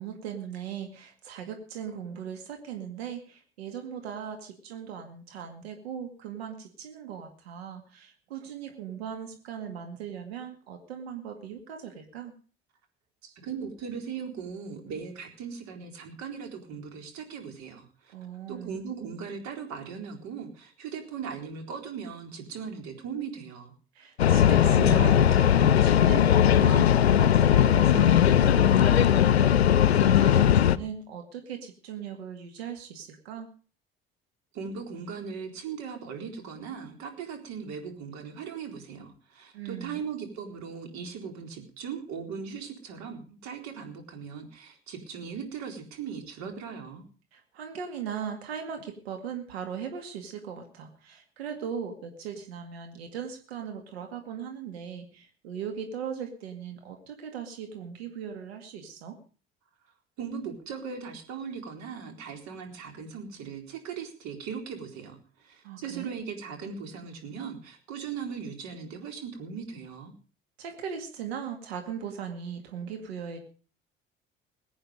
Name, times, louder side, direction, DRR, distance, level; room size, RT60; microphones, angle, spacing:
voice 1, 0.0-12.3 18.1-18.8 23.9-33.5 39.5-40.0 47.3-59.2 65.6-66.1 70.6-73.4, right 7 dB, 80° right, 4 dB, 2.2 m, -38 dB
voice 2, 13.2-18.1 18.5-23.7 34.5-47.0 60.2-65.2 65.4-70.1, right 6 dB, 60° right, 4 dB, 4.1 m, -39 dB
sound 1, 24.2-30.8, left 10 dB, 90° left, 0.6 m, -19 dB
21.5 x 8.8 x 5.2 m, 0.39 s
hypercardioid pair, 55°, 31 cm